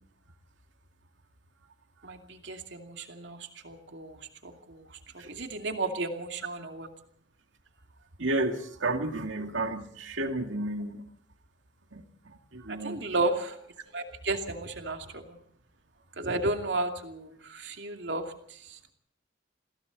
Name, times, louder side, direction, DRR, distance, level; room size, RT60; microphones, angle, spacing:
voice 1, 2.0-4.2 4.4-4.9 5.1-6.9 12.7-13.6 13.9-15.4 16.2-18.9, right 2 dB, 65° right, 4 dB, 2.6 m, -33 dB
voice 2, 8.2-11.0 11.9-12.0 12.5-13.0, right 2 dB, 80° right, 5 dB, 2.4 m, -31 dB
29.0 x 22.0 x 4.1 m, 0.65 s
head